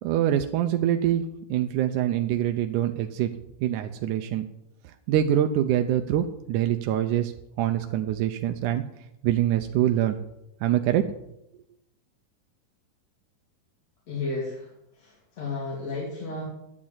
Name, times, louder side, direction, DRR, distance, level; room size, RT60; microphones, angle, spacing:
voice 1, 0.0-1.2 1.5-3.3 3.6-4.5 5.1-7.3 7.6-8.8 9.2-10.2 10.6-11.1, right 11 dB, 80° right, 6 dB, 1.9 m, -24 dB
voice 2, 14.1-14.7 15.0-16.4, left 3 dB, 45° left, -5 dB, 3.9 m, -33 dB
11.5 x 8.6 x 8.8 m, 0.83 s
omnidirectional pair, 4.2 m